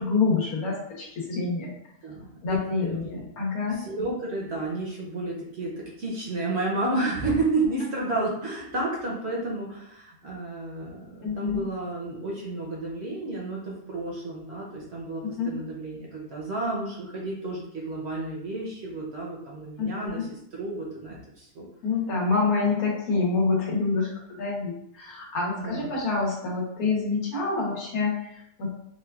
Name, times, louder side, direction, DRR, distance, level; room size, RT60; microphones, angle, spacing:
voice 1, 0.0-1.7 2.4-3.8 11.2-11.6 15.4-15.5 19.8-20.3 21.8-28.7, left 4 dB, 85° left, -3 dB, 1.4 m, -27 dB
voice 2, 2.0-3.2 3.7-21.7 25.6-25.9, right 2 dB, 55° right, -4 dB, 0.8 m, -31 dB
4.0 x 2.3 x 2.3 m, 0.75 s
omnidirectional pair, 1.5 m